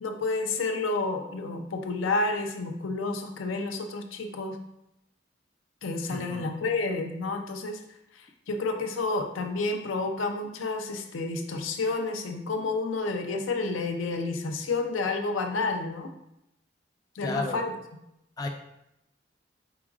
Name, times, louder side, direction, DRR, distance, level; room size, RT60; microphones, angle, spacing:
voice 1, 0.0-4.6 5.8-7.8 8.1-16.1 17.2-17.7, left 3 dB, 90° left, 4 dB, 0.5 m, -30 dB
voice 2, 6.1-6.5 17.2-17.6 18.4-18.5, left 2 dB, 20° left, 2 dB, 0.3 m, -32 dB
4.8 x 3.8 x 2.4 m, 0.84 s
head